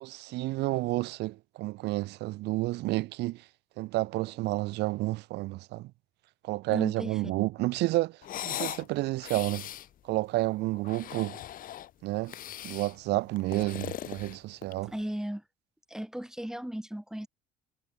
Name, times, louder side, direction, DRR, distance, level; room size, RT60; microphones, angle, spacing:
voice 1, 0.0-3.4 3.8-5.9 6.4-8.2 8.4-9.6 10.1-11.4 12.0-12.3 12.6-14.9, right 19 dB, 85° right, 1.9 m, -30 dB
voice 2, 6.7-7.5 10.6-10.7 14.8-15.4 15.9-17.3, equal, 5° right, 2.4 m, -36 dB
sound 1, 8.2-8.9 9.2-9.9 10.7-11.9 12.3-12.9 13.4-14.9, left 12 dB, 55° left, 0.9 m, -39 dB
cardioid pair, 110°, 17 cm